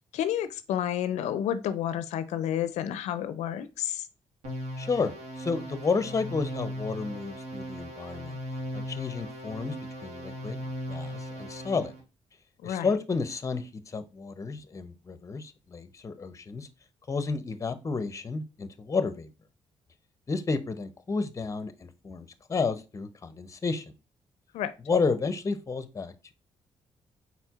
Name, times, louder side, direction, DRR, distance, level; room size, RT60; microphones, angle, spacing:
voice 1, 0.1-4.1 12.6-12.9 24.5-24.7, left 10 dB, 85° left, 0.4 m, -30 dB
sound 1, 4.4-12.0, equal, 85° right, 1.7 m, -38 dB
voice 2, 4.8-8.4 8.7-9.8 10.0-10.6 10.9-11.9 12.6-16.7 17.1-19.3 20.3-23.8 24.9-26.3, left 4 dB, 30° left, 0.6 m, -31 dB
4.3 x 4.1 x 2.3 m
cardioid pair, 90°, 11 cm